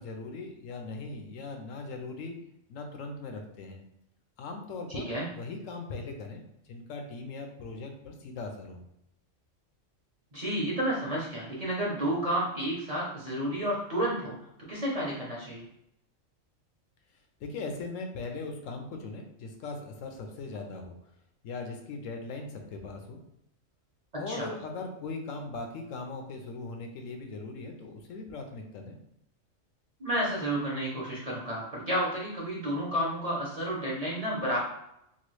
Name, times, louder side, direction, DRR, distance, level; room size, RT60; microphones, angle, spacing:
voice 1, 0.0-2.3 2.7-3.8 4.4-6.4 6.7-8.8 17.4-20.9 21.4-23.2 24.2-29.0, left 3 dB, 80° left, 4 dB, 1.0 m, -39 dB
voice 2, 4.9-5.3 10.3-15.6 24.1-24.5 30.0-34.6, right 1 dB, 35° right, -5 dB, 0.6 m, -31 dB
3.0 x 2.3 x 3.0 m, 0.80 s
omnidirectional pair, 1.3 m